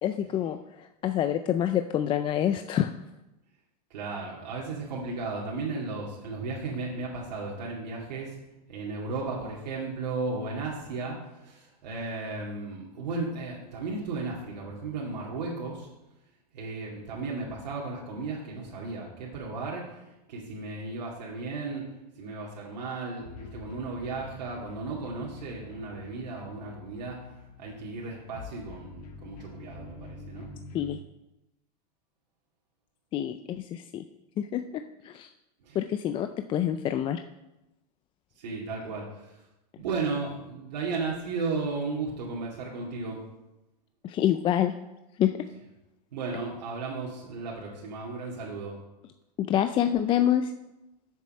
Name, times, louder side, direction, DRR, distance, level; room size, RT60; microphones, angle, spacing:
voice 1, 0.0-2.9 30.7-31.0 33.1-34.0 34.4-34.6 35.0-35.3 35.8-37.2 44.0-44.7 45.2-45.3 49.5-50.5, left 10 dB, 25° left, 9 dB, 0.4 m, -26 dB
voice 2, 3.9-8.4 8.7-15.9 16.5-27.2 27.6-30.5 35.6-35.8 38.4-39.4 39.8-43.2 46.1-48.8, right 3 dB, 85° right, -4 dB, 2.3 m, -35 dB
sound 1, 23.2-31.0, left 4 dB, 70° left, 1.5 m, -46 dB
7.3 x 7.2 x 6.5 m, 0.96 s
supercardioid pair, 135°, 21 cm